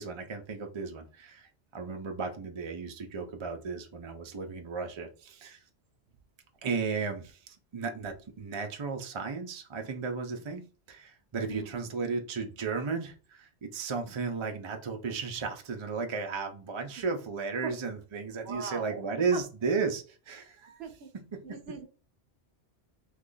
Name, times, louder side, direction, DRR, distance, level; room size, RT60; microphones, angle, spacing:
voice 1, 0.0-5.6 6.6-20.8 21.1-21.6, right 5 dB, 45° right, 0.3 m, -34 dB
voice 2, 18.4-19.1 19.3-19.4 20.8-21.1 21.4-21.9, right 5 dB, 65° right, 0.8 m, -39 dB
3.0 x 2.4 x 3.8 m
omnidirectional pair, 1.2 m